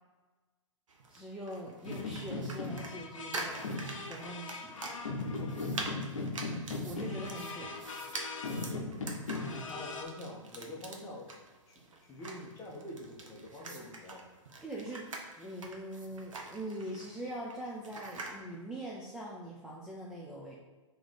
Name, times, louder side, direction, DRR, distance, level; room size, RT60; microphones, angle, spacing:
sound 1, 0.9-18.4, right 3 dB, 75° right, 0.8 m, -45 dB
voice 1, 1.1-3.7 4.0-4.8 6.8-7.9 14.6-15.1 15.4-20.5, right 1 dB, 5° right, -5 dB, 0.5 m, -42 dB
sound 2, 1.8-10.0, left 3 dB, 75° left, 0.8 m, -38 dB
voice 2, 5.2-5.9 9.3-11.3 11.7-14.2, left 1 dB, 20° left, -1 dB, 0.9 m, -46 dB
3.1 x 3.1 x 4.0 m, 1.3 s
hypercardioid pair, 120°, 17 cm